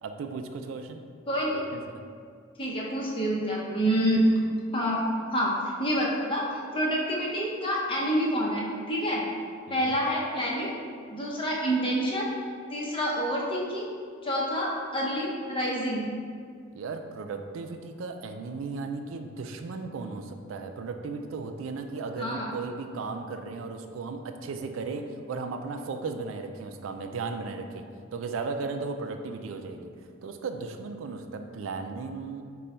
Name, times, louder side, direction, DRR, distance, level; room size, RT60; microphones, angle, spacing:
voice 1, 0.0-1.0 1.5-2.0 9.7-10.0 16.7-32.4, right 4 dB, 80° right, 6 dB, 0.4 m, -36 dB
voice 2, 1.3-1.6 2.6-4.2 4.7-5.0 5.3-5.5 5.8-9.2 9.7-10.7 11.1-12.3 12.7-13.9 14.2-16.0 22.2-22.5, equal, 25° left, -4 dB, 0.7 m, -28 dB
5.1 x 2.3 x 4.2 m, 2.1 s
head